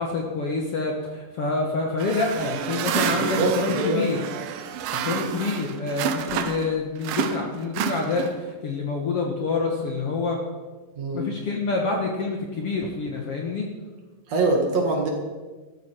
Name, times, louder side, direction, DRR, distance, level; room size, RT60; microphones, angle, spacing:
voice 1, 0.0-4.2 4.9-10.4 11.1-13.7, left 3 dB, 55° left, 0 dB, 1.8 m, -27 dB
sound 1, 2.0-6.7 7.0-8.5, right 8 dB, 85° right, 2.5 m, -29 dB
voice 2, 3.1-4.0 11.0-11.2 14.3-15.1, right 2 dB, 55° right, 1 dB, 2.8 m, -24 dB
14.0 x 13.5 x 4.5 m, 1.3 s
omnidirectional pair, 4.0 m